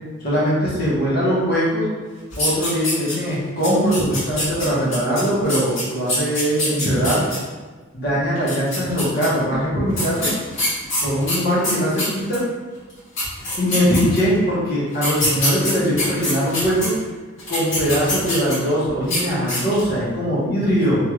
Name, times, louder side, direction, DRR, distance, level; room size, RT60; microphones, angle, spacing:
voice 1, 0.2-1.9 2.3-7.2 7.9-10.3 11.0-12.4 13.6-16.9 17.5-21.0, equal, 45° left, -8 dB, 1.1 m, -21 dB
sound 1, 2.3-3.3 3.6-7.4 8.4-9.3 9.9-12.4 12.9-13.0 13.2-14.4 14.9-16.9 17.4-18.7 19.0-19.2 19.5-19.9, left 1 dB, 65° left, 1.3 m, -25 dB
3.0 x 2.7 x 2.4 m, 1.4 s
head